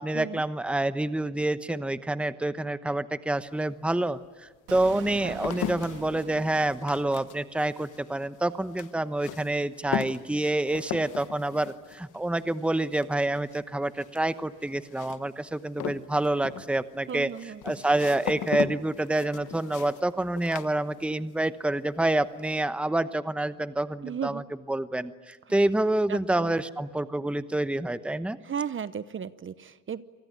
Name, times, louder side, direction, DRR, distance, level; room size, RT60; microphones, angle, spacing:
voice 1, 0.0-24.4 24.7-28.4, right 1 dB, 5° right, 12 dB, 1.0 m, -28 dB
sound 1, 3.5-3.6 4.2-21.4 21.7-22.3, left 11 dB, 80° left, 1.3 m, -39 dB
Explosion, 4.7-7.6, right 9 dB, 85° right, 2.1 m, -43 dB
voice 2, 17.1-17.6 24.0-24.4 26.1-26.6 28.4-30.0, right 7 dB, 40° right, 14 dB, 0.9 m, -35 dB
28.0 x 20.0 x 9.7 m, 1.4 s
cardioid pair, 90°, 30 cm